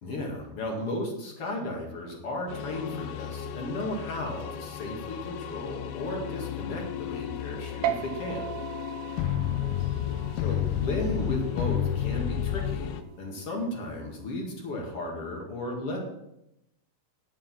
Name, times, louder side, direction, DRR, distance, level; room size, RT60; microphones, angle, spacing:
voice 1, 0.0-8.5 10.4-16.0, left 1 dB, 45° left, 0 dB, 2.4 m, -34 dB
sound 1, 2.5-13.0, left 10 dB, 90° left, 2.6 m, -32 dB
sound 2, 7.8-14.6, right 11 dB, 90° right, 2.7 m, -39 dB
10.5 x 7.4 x 5.8 m, 0.85 s
omnidirectional pair, 4.5 m